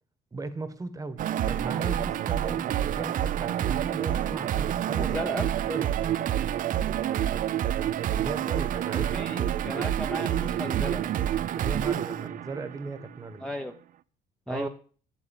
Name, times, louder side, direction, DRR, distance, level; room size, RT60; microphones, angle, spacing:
voice 1, 0.3-5.2 5.7-5.9 8.2-9.3 11.5-13.5 14.5-14.7, right 3 dB, 20° right, 11 dB, 1.3 m, -37 dB
sound 1, 1.2-13.2, right 11 dB, 50° right, 0.5 m, -28 dB
voice 2, 5.0-5.5 8.9-11.1 13.4-13.7 14.5-14.7, equal, 5° left, 2 dB, 0.8 m, -35 dB
8.2 x 7.4 x 6.9 m, 0.42 s
cardioid pair, 110°, 17 cm